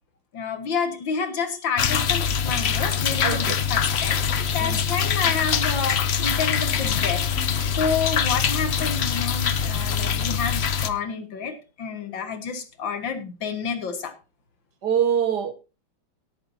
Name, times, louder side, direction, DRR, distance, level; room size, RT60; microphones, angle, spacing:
voice 1, 0.3-7.2 7.7-14.1, left 5 dB, 65° left, 2.3 m, -29 dB
sound 1, 1.8-10.9, left 7 dB, 80° left, 0.5 m, -24 dB
voice 2, 3.2-3.6 4.6-4.8 14.8-15.5, right 8 dB, 60° right, 1.5 m, -24 dB
18.0 x 8.8 x 2.8 m
omnidirectional pair, 2.3 m